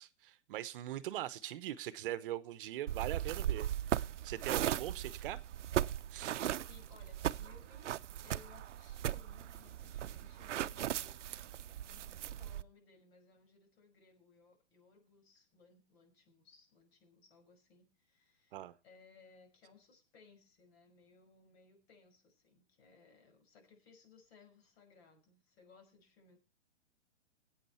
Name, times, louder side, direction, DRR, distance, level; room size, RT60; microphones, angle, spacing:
voice 1, 0.0-4.0 4.2-5.4 6.1-6.4 18.5-18.7, right 13 dB, 45° right, 0.9 m, -41 dB
sound 1, 2.9-12.6, right 11 dB, 80° right, 0.7 m, -38 dB
voice 2, 6.7-7.9 8.2-11.5 11.8-26.4, left 5 dB, 60° left, 5.7 m, -63 dB
17.0 x 8.9 x 4.4 m
hypercardioid pair, 140°, 36 cm